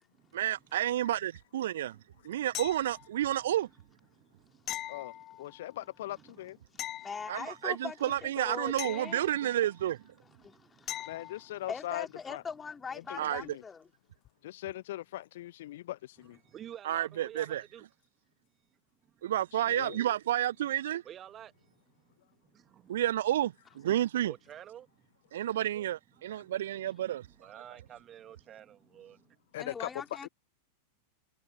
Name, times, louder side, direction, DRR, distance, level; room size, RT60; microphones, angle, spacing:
voice 1, 0.3-2.0 2.2-3.7 7.3-10.0 13.2-13.4 16.8-17.6 19.2-21.0 22.9-24.3 25.3-27.3, right 12 dB, 60° right, 0.6 m, -30 dB
sound 1, 2.5-3.3 4.7-5.7 6.8-7.8 8.8-9.8 10.9-11.5 14.2-14.3, left 14 dB, 35° left, 1.6 m, -41 dB
voice 2, 4.1-5.6 6.1-7.1 10.2-11.7 16.4-17.9 19.0-19.3 21.0-22.1 22.4-23.0 24.3-25.1 26.2-26.6 27.0-29.4, right 10 dB, 30° right, 2.2 m, -53 dB
voice 3, 4.9-6.6 11.1-12.4 12.9-13.6 14.4-16.4 19.5-20.0 29.5-29.9 30.2-30.3, left 15 dB, 55° left, 1.0 m, -40 dB
voice 4, 7.0-9.3 10.4-11.1 11.7-13.9 29.6-30.3, left 5 dB, 15° left, 3.7 m, -41 dB
figure-of-eight pair, 90°, 0 cm